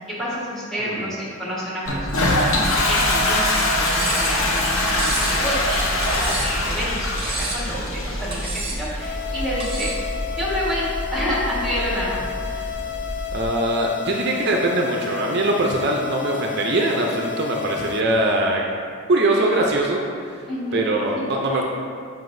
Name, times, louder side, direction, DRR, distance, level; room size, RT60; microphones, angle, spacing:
voice 1, 0.1-9.9 10.3-12.2 12.5-12.6 20.5-20.9 21.1-21.2, equal, ahead, -7 dB, 1.4 m, -29 dB
voice 2, 0.8-1.1 13.3-18.6 19.1-20.5 20.7-21.6, right 2 dB, 50° right, 0 dB, 0.5 m, -22 dB
Toilet flush, 1.8-13.4, left 1 dB, 75° left, 0.8 m, -24 dB
Cutlery silverware, 3.9-4.4 5.0-5.4 6.0-6.6 7.2-7.7 8.3-8.8 9.6-10.0, right 3 dB, 25° right, 0.9 m, -30 dB
sound 1, 9.0-18.0, left 10 dB, 55° left, 0.4 m, -31 dB
7.5 x 5.4 x 2.6 m, 2.2 s
head